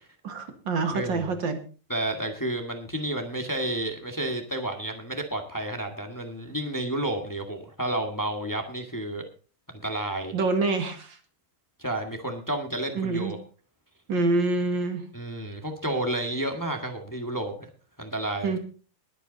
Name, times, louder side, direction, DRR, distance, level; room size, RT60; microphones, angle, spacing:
voice 1, 0.2-1.6 10.3-11.2 13.0-13.3 14.1-15.0 18.4-18.6, right 3 dB, 70° right, 5 dB, 2.6 m, -26 dB
voice 2, 0.9-1.4 1.9-9.2 9.7-10.3 11.8-13.4 15.1-17.7 18.0-18.6, right 1 dB, 10° left, 3 dB, 1.7 m, -31 dB
20.5 x 8.4 x 4.0 m, 0.38 s
omnidirectional pair, 2.1 m